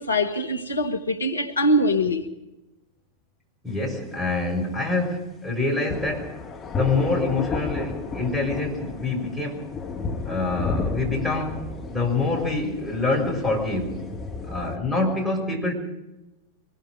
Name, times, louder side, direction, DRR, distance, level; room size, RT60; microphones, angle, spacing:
voice 1, 0.0-2.3, left 1 dB, 75° left, 1.4 m, -23 dB
voice 2, 3.6-6.3 6.7-9.7 10.3-14.0 14.5-15.7, left 3 dB, ahead, 6.3 m, -26 dB
sound 1, 5.9-14.8, left 4 dB, 25° left, 3.8 m, -33 dB
25.0 x 20.5 x 5.1 m
figure-of-eight pair, 90°, 0 cm